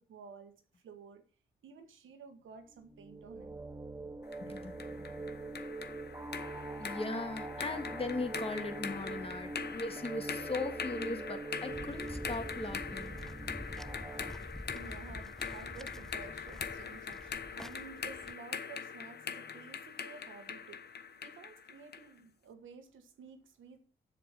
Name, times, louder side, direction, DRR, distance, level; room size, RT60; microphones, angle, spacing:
voice 1, 0.1-1.2 1.6-3.7 11.2-11.3 14.6-23.8, right 5 dB, 85° right, 1.4 m, -52 dB
sound 1, 2.7-14.3, right 2 dB, 15° right, 0.8 m, -44 dB
sound 2, 4.3-22.1, left 6 dB, 55° left, 0.9 m, -43 dB
voice 2, 4.4-5.3 6.8-13.5, left 2 dB, 30° left, 1.9 m, -39 dB
sound 3, 11.7-18.3, left 1 dB, ahead, 0.4 m, -47 dB
7.5 x 6.7 x 5.7 m
cardioid pair, 50°, 20 cm